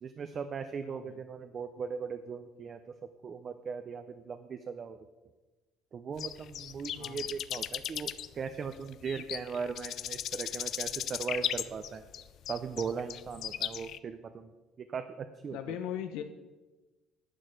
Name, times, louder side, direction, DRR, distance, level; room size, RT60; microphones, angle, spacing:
voice 1, 0.0-2.8 3.2-5.0 5.9-12.0 12.5-14.5 14.8-15.8, right 6 dB, 30° right, 9 dB, 0.5 m, -38 dB
voice 2, 0.9-1.2 6.9-7.3 15.5-16.2, left 10 dB, 85° left, 7 dB, 0.8 m, -39 dB
sound 1, 6.2-14.0, left 11 dB, 45° left, 0.4 m, -37 dB
11.0 x 7.9 x 6.5 m, 1.2 s
cardioid pair, 160°, 0 cm